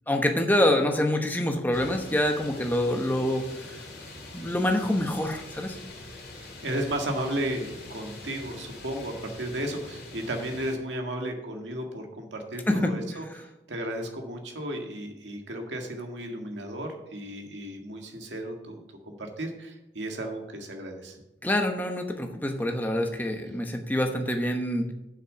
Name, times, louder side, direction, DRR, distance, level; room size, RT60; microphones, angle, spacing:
voice 1, 0.1-3.5 4.3-5.8 12.7-12.9 21.4-24.9, left 1 dB, 10° left, 4 dB, 1.0 m, -26 dB
sound 1, 1.7-10.7, left 2 dB, 65° left, 3.0 m, -44 dB
voice 2, 6.6-18.8 19.0-21.2, right 1 dB, 90° right, 3 dB, 1.8 m, -34 dB
7.8 x 6.2 x 6.4 m, 0.97 s
head